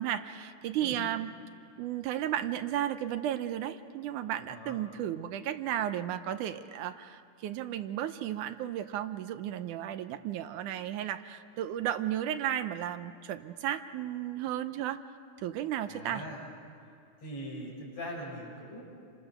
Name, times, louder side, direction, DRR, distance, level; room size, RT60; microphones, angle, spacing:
voice 1, 0.0-1.3 1.8-15.0 15.4-16.2, right 11 dB, 85° right, 10 dB, 2.3 m, -34 dB
voice 2, 15.9-16.4 17.2-18.8, equal, 45° left, -3 dB, 7.1 m, -41 dB
28.0 x 25.0 x 6.9 m, 2.4 s
omnidirectional pair, 3.5 m